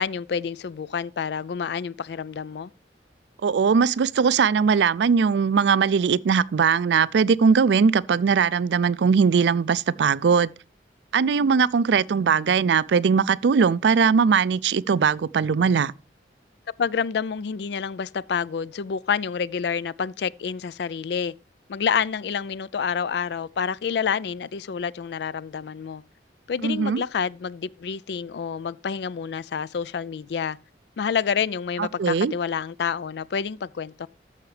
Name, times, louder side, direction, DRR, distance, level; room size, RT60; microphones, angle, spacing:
voice 1, 0.0-2.7 16.8-21.3 21.7-26.0 26.5-30.6 31.0-34.1, left 6 dB, 65° left, 0.4 m, -28 dB
voice 2, 3.4-10.5 11.1-15.9 26.6-27.0 31.8-32.3, right 6 dB, 75° right, 0.4 m, -20 dB
14.0 x 5.7 x 3.2 m
head